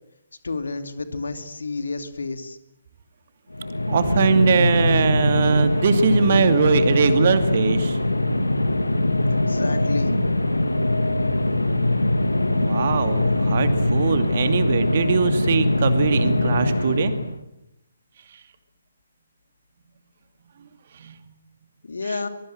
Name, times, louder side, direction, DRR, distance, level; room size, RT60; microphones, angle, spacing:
voice 1, 0.4-2.6 9.3-10.2 21.8-22.3, left 3 dB, 65° left, 8 dB, 2.8 m, -30 dB
sound 1, 3.5-17.4, left 1 dB, 80° left, 2.0 m, -22 dB
voice 2, 3.9-8.0 12.5-17.1 21.0-21.2, right 5 dB, 45° right, 9 dB, 2.4 m, -21 dB
24.0 x 23.0 x 7.8 m, 0.87 s
figure-of-eight pair, 135°, 0 cm